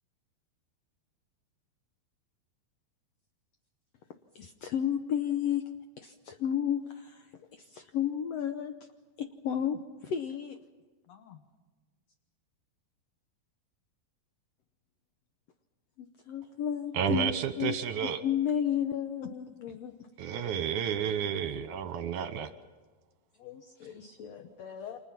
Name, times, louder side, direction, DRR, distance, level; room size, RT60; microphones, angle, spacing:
voice 1, 4.3-5.7 6.0-8.9 9.2-10.6 16.0-17.8 18.0-19.9, left 9 dB, 80° left, 7 dB, 1.4 m, -32 dB
voice 2, 11.1-11.4 19.7-19.8 23.3-25.0, left 8 dB, 60° left, 6 dB, 2.1 m, -46 dB
voice 3, 16.9-18.2 20.2-22.5, right 8 dB, 70° right, 10 dB, 2.2 m, -31 dB
29.5 x 26.5 x 5.9 m, 1.3 s
omnidirectional pair, 4.2 m